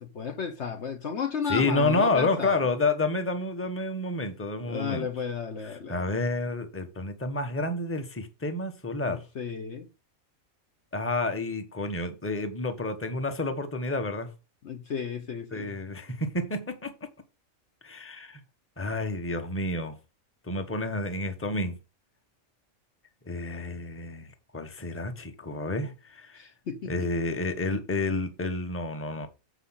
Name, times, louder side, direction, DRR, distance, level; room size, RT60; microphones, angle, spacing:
voice 1, 0.0-2.6 4.7-6.1 9.1-9.9 14.6-15.7 26.3-27.1, left 6 dB, 55° left, 1.2 m, -33 dB
voice 2, 1.5-5.1 5.9-9.2 10.9-14.3 15.5-16.9 17.8-18.4 18.8-19.9 20.4-21.8 23.3-24.3 24.5-26.4 26.9-29.3, left 2 dB, 10° left, 1.1 m, -29 dB
8.1 x 4.9 x 5.7 m
omnidirectional pair, 1.5 m